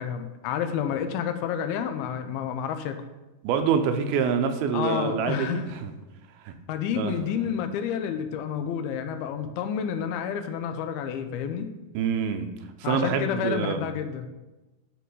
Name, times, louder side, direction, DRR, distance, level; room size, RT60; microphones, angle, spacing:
voice 1, 0.0-3.0 4.7-5.7 6.7-11.7 12.8-14.3, left 8 dB, 85° left, 8 dB, 2.6 m, -29 dB
voice 2, 3.4-5.9 6.4-6.5 7.0-7.2 11.9-12.5 12.8-13.9, right 6 dB, 85° right, 7 dB, 2.6 m, -26 dB
10.5 x 4.7 x 5.3 m, 1.1 s
omnidirectional pair, 4.4 m